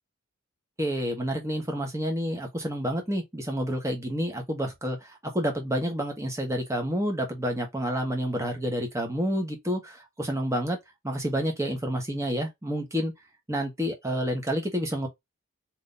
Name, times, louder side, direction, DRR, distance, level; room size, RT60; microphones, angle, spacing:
voice 1, 0.8-10.8 11.0-13.1 13.5-15.1, equal, 15° right, 1.3 m, -29 dB
3.8 x 3.0 x 3.9 m
head